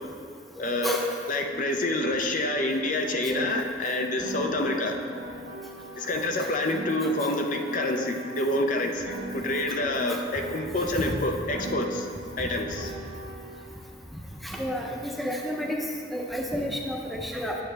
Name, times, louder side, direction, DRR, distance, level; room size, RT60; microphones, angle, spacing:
voice 1, 0.6-1.0 1.3-5.0 6.0-12.1 12.4-12.9, left 1 dB, 45° left, 3 dB, 0.6 m, -27 dB
voice 2, 3.2-3.6 9.9-10.3 10.9-11.0 14.4-17.6, equal, ahead, 0 dB, 0.6 m, -31 dB
Piano, 4.2-8.7 9.0-13.7, right 1 dB, 85° right, 1.6 m, -40 dB
9.4 x 7.6 x 3.3 m, 2.3 s
head